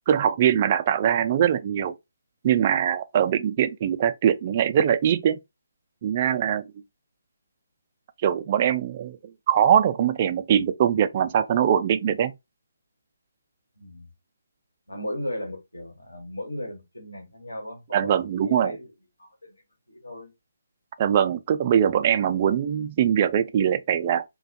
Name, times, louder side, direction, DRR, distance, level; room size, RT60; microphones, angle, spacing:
voice 1, 0.1-1.9 2.4-5.4 6.0-6.6 8.2-9.2 9.5-12.3 17.9-18.7 21.0-24.2, right 9 dB, 35° right, 0.3 m, -22 dB
voice 2, 13.8-14.1 14.9-18.9 19.2-19.6 19.9-20.3, left 1 dB, 85° left, 1.1 m, -36 dB
2.3 x 2.2 x 2.6 m
figure-of-eight pair, 145°, 0 cm